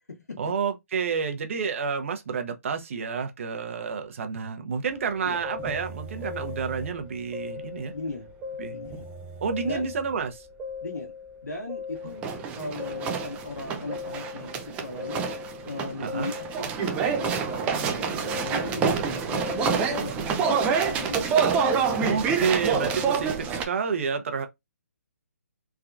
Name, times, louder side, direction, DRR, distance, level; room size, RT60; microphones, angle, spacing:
voice 1, 0.4-7.9 8.6-8.8 9.4-10.5 16.0-16.3 22.0-24.5, right 6 dB, 50° right, 0.8 m, -29 dB
sound 1, 4.9-5.0 5.4-7.1 7.3-8.1 8.4-10.2 10.6-11.3 11.7-23.7, right 5 dB, 15° right, 0.3 m, -28 dB
voice 2, 7.9-8.3 8.7-9.0 9.6-9.9 10.8-11.1 11.4-15.3 15.6-21.4, left 2 dB, 85° left, 1.4 m, -37 dB
3.4 x 2.3 x 2.5 m
figure-of-eight pair, 140°, 9 cm